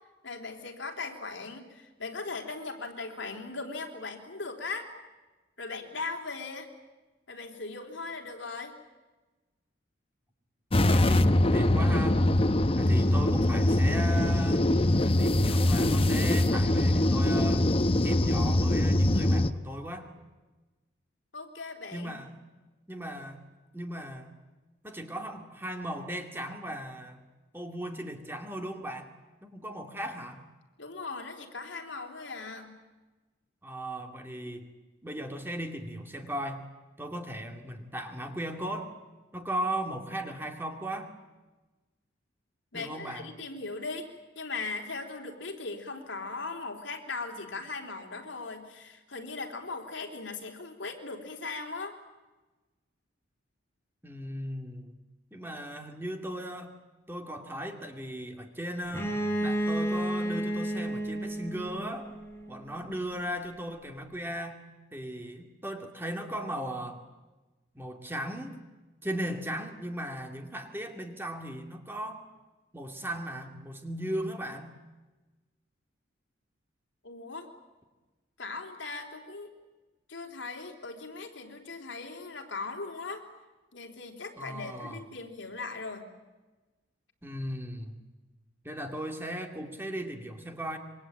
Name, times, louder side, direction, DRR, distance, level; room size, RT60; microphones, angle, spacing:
voice 1, 0.2-4.9 5.6-6.7 7.3-8.8 21.3-22.1 30.8-32.8 42.7-52.0 77.0-77.5 78.4-79.5 80.1-83.3 83.7-86.1, left 3 dB, 70° left, 4 dB, 3.6 m, -39 dB
sound 1, 10.7-19.5, left 1 dB, 30° left, 0.8 m, -23 dB
voice 2, 10.8-12.3 12.8-14.7 15.0-17.7 18.0-20.1 21.9-22.4 22.9-23.4 23.7-24.3 24.8-27.2 27.5-29.1 29.4-30.4 33.6-34.7 35.0-36.6 37.0-38.9 39.3-41.1 42.7-43.3 54.0-54.9 55.3-56.8 57.1-59.1 59.4-62.1 62.5-64.6 64.9-67.0 67.7-68.6 69.0-72.3 72.7-74.8 84.4-85.0 87.2-88.0 88.6-90.8, right 1 dB, 10° right, 4 dB, 2.5 m, -37 dB
Bowed string instrument, 58.9-62.6, right 1 dB, 15° left, 4.5 m, -31 dB
27.0 x 23.5 x 8.9 m, 1.2 s
head